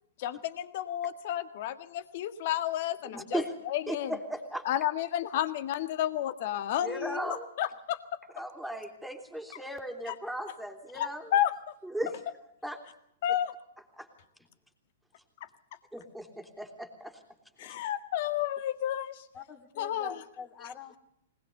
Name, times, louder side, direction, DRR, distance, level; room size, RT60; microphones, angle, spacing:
voice 1, 0.2-4.1 4.6-8.0 10.1-10.2 10.9-11.5 13.2-13.5 17.6-19.2 19.8-20.1, left 11 dB, 55° left, 1.8 m, -31 dB
voice 2, 3.1-3.5 3.9-4.6 6.8-7.5 8.3-11.3 11.8-12.1 12.6-12.8 14.0-14.1 15.9-17.2 17.6-17.7, equal, ahead, 3.3 m, -37 dB
voice 3, 19.3-21.0, left 6 dB, 25° left, 2.7 m, -44 dB
20.5 x 19.5 x 6.7 m
hypercardioid pair, 125°, 0 cm